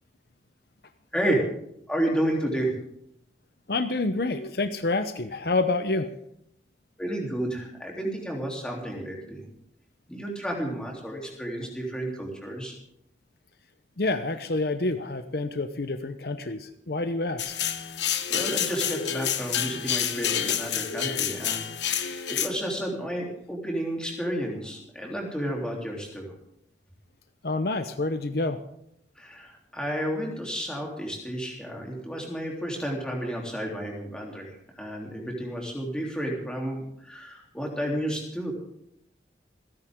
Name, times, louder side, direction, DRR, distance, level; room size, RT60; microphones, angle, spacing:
voice 1, 1.9-2.7 7.0-9.5 10.1-12.8 18.3-26.3 29.2-38.5, right 1 dB, 5° left, -1 dB, 3.4 m, -31 dB
voice 2, 3.7-6.1 14.0-17.6 27.4-28.6, left 2 dB, 60° left, 9 dB, 0.8 m, -28 dB
sound 1, 17.4-22.5, left 9 dB, 85° left, 1.2 m, -28 dB
27.0 x 10.5 x 3.8 m, 0.74 s
head